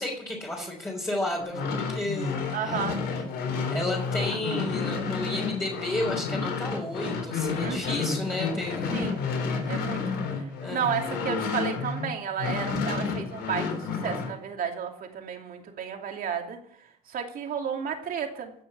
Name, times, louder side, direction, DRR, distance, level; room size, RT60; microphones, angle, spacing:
voice 1, 0.0-2.8 3.7-9.0 9.8-10.0 10.6-10.9, left 1 dB, 15° left, -4 dB, 3.9 m, -32 dB
sound 1, 1.4-12.1 12.4-14.3, left 5 dB, 75° left, 4.1 m, -30 dB
voice 2, 2.5-3.0 7.6-8.2 8.9-9.3 9.7-10.0 10.4-16.6 17.1-18.5, right 7 dB, 55° right, 3 dB, 2.8 m, -32 dB
16.5 x 6.9 x 7.0 m, 0.66 s
cardioid pair, 110°, 17 cm